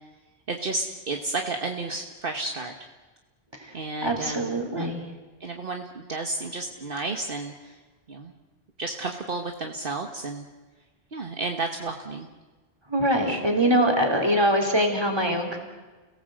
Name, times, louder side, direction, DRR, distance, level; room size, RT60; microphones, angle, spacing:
voice 1, 0.5-2.7 3.7-4.9 5.4-7.8 8.1-8.3 8.8-10.5 11.1-12.3 13.3-13.4, right 3 dB, 60° right, 4 dB, 1.5 m, -32 dB
voice 2, 3.5-5.0 12.9-15.6, right 1 dB, 25° right, 3 dB, 3.7 m, -23 dB
29.5 x 17.5 x 7.9 m, 1.3 s
omnidirectional pair, 1.1 m